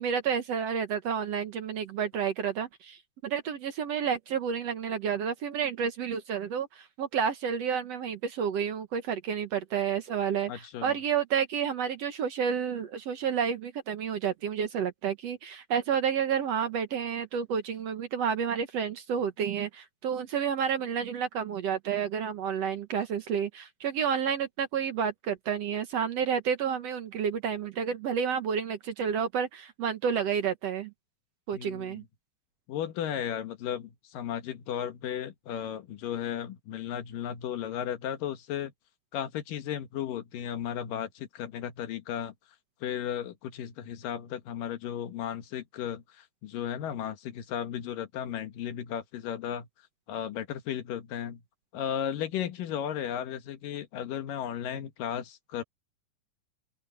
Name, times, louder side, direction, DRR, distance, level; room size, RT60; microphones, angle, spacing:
voice 1, 0.0-30.9 31.5-32.0, right 7 dB, 60° right, 2.0 m, -30 dB
voice 2, 10.5-11.0 31.5-32.0 32.7-38.7 39.1-42.3 42.8-49.7 50.1-51.4 51.7-55.6, left 9 dB, 85° left, 3.1 m, -35 dB
open air
omnidirectional pair, 3.8 m